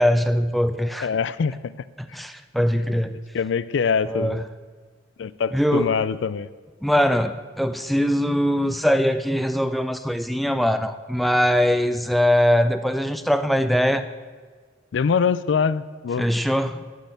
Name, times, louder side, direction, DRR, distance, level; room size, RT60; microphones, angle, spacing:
voice 1, 0.0-1.1 2.1-3.2 4.1-4.4 5.5-6.0 6.8-14.1 16.2-16.8, equal, ahead, 0.3 m, -21 dB
voice 2, 1.0-1.7 3.3-4.4 5.2-6.5 14.9-16.3, left 6 dB, 85° left, 0.4 m, -23 dB
11.5 x 4.4 x 8.0 m
head